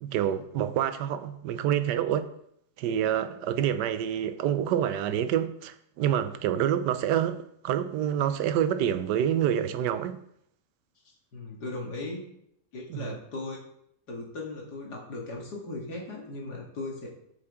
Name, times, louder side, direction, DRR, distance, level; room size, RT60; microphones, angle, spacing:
voice 1, 0.0-2.3 2.8-10.2 12.9-13.1, right 10 dB, 85° right, 1.2 m, -27 dB
voice 2, 11.3-12.2 12.7-13.6 14.1-17.1, left 2 dB, 70° left, 2.4 m, -37 dB
8.6 x 7.2 x 3.6 m
omnidirectional pair, 1.8 m